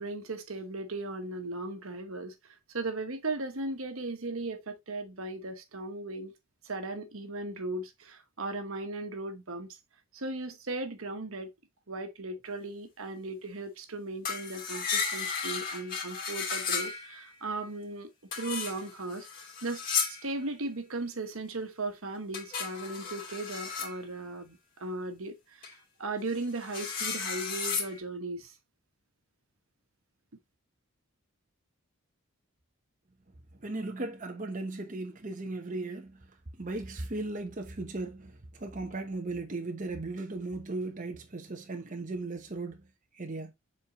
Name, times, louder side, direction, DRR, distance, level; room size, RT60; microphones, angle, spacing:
voice 1, 0.0-2.3 2.7-6.3 6.6-9.8 10.1-11.5 11.9-18.1 18.4-19.3 19.6-19.8 20.1-28.5, right 2 dB, 75° right, 1.2 m, -37 dB
sound 1, 14.2-17.3 18.3-20.4 22.3-24.0 25.6-25.7 26.3-28.0, left 5 dB, 40° left, 2.6 m, -34 dB
voice 2, 33.6-42.9 43.1-43.5, right 2 dB, 35° right, 0.8 m, -37 dB
7.3 x 4.4 x 2.9 m
head